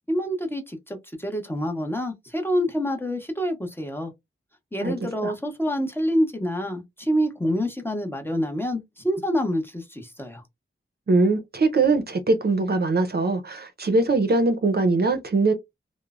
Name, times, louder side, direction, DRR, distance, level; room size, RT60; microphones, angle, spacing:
voice 1, 0.1-4.1 4.7-10.4, equal, 10° left, 0.7 m, -27 dB
voice 2, 11.1-15.5, right 3 dB, 50° right, 0.5 m, -21 dB
3.0 x 2.0 x 2.3 m
wide cardioid pair, 110°, 21 cm